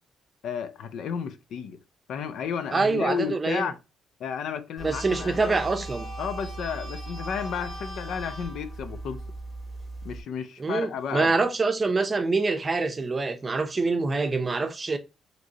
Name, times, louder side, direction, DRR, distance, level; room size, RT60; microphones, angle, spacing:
voice 1, 0.4-1.8 2.1-3.8 4.2-5.9 6.2-9.2 10.0-11.5, left 7 dB, 75° left, 0.5 m, -32 dB
voice 2, 2.7-3.7 4.8-6.1 10.6-15.0, right 3 dB, 30° right, 0.6 m, -25 dB
sound 1, 4.8-10.2, right 2 dB, 15° left, 1.9 m, -38 dB
5.1 x 3.0 x 2.8 m
cardioid pair, 90°, 0 cm